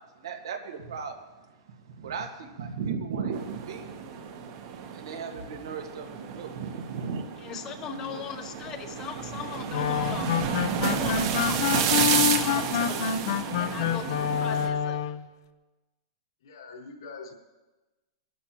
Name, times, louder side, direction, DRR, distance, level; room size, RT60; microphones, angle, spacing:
voice 1, 0.0-3.9 4.9-7.3, right 6 dB, 85° right, 3 dB, 1.9 m, -36 dB
sound 1, 3.3-14.7, right 7 dB, 35° right, 1.1 m, -31 dB
voice 2, 7.4-10.3 10.8-13.2 13.6-15.0, left 7 dB, 20° left, 8 dB, 0.9 m, -39 dB
sound 2, 9.7-15.3, left 9 dB, 50° left, 0.6 m, -27 dB
voice 3, 16.4-17.3, left 3 dB, 85° left, -1 dB, 5.0 m, -42 dB
21.5 x 12.0 x 3.0 m, 1.1 s
supercardioid pair, 175°, 2 cm